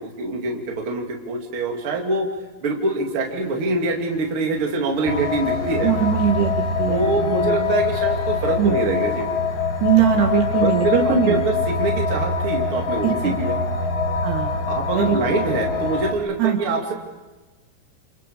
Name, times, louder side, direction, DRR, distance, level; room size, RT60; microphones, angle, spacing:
voice 1, 0.0-2.3 2.6-5.9 6.9-9.3 10.6-13.6 14.7-16.9, right 3 dB, 35° right, 0 dB, 2.7 m, -24 dB
sound 1, 3.2-11.1, left 2 dB, 85° left, 6.2 m, -47 dB
sound 2, 5.0-16.1, left 4 dB, 50° left, 2.0 m, -24 dB
voice 2, 5.8-6.5 6.8-7.1 7.3-7.7 8.6-8.7 9.8-11.4 13.0-13.3 14.2-14.7 14.9-15.2 16.4-16.6, right 8 dB, 65° right, 3 dB, 3.3 m, -21 dB
29.0 x 28.0 x 5.0 m, 1.2 s
omnidirectional pair, 5.6 m